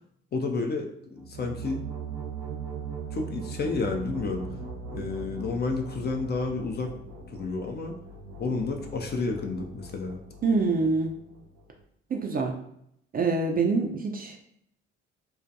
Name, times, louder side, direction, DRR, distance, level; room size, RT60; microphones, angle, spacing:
voice 1, 0.3-1.8 3.1-4.4 4.9-6.9 7.3-7.9 8.4-10.2, left 3 dB, 30° left, 3 dB, 0.4 m, -30 dB
sound 1, 1.2-11.8, right 4 dB, 80° right, 0.6 m, -40 dB
voice 2, 10.4-11.1 12.1-12.5 13.1-14.4, right 4 dB, 30° right, 2 dB, 0.4 m, -25 dB
2.2 x 2.1 x 2.7 m, 0.72 s
hypercardioid pair, 50°, 32 cm